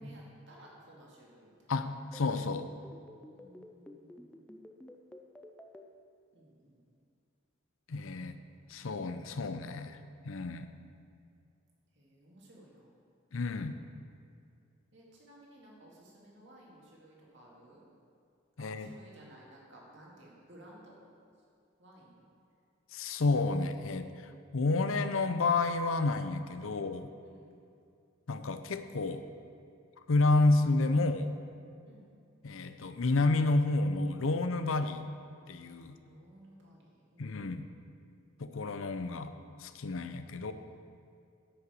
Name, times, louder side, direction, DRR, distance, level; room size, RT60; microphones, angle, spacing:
voice 1, 0.0-1.7 3.3-4.3 6.3-6.8 11.9-12.9 14.9-17.8 18.6-20.9 21.8-22.2 27.2-27.5 31.8-32.1 36.1-37.4, right 1 dB, 60° right, -3 dB, 2.3 m, -56 dB
voice 2, 1.7-2.7 7.9-8.4 8.7-10.0 10.2-10.7 13.3-13.7 18.6-18.9 22.9-27.1 28.3-29.2 30.1-31.3 32.4-35.1 35.5-36.0 37.2-37.7 38.4-39.3 39.6-40.5, left 3 dB, 70° left, 10 dB, 0.6 m, -30 dB
sound 1, 2.0-5.8, left 1 dB, 5° left, 0.5 m, -50 dB
9.9 x 5.8 x 7.0 m, 2.4 s
head